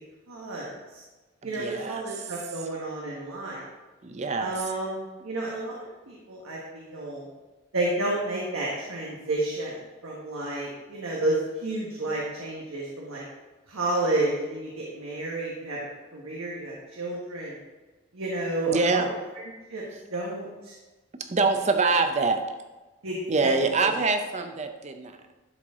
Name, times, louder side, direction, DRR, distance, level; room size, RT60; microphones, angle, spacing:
voice 1, 0.3-1.0 1.4-3.7 4.4-5.8 6.1-7.3 7.7-9.8 10.0-13.2 13.7-15.8 16.1-17.6 18.1-19.1 19.7-19.8 20.1-20.7 23.0-23.9, right 2 dB, 90° right, -4 dB, 1.4 m, -31 dB
voice 2, 1.4-2.0 4.0-4.5 18.7-19.1 21.3-22.5 23.3-25.1, right 3 dB, 30° right, 7 dB, 0.6 m, -25 dB
11.5 x 4.7 x 3.7 m, 1.2 s
head